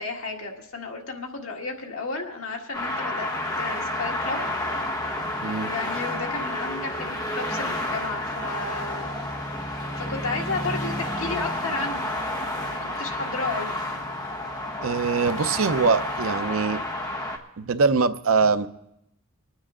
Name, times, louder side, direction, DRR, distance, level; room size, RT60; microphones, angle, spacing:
voice 1, 0.0-4.5 5.6-9.3 10.0-12.1 12.4-13.8, left 3 dB, 75° left, 1 dB, 1.8 m, -33 dB
sound 1, 2.7-17.4, left 1 dB, 20° left, 1.3 m, -30 dB
voice 2, 14.8-16.8 17.6-18.7, right 4 dB, 70° right, 10 dB, 0.6 m, -22 dB
25.5 x 9.6 x 3.7 m, 0.82 s
head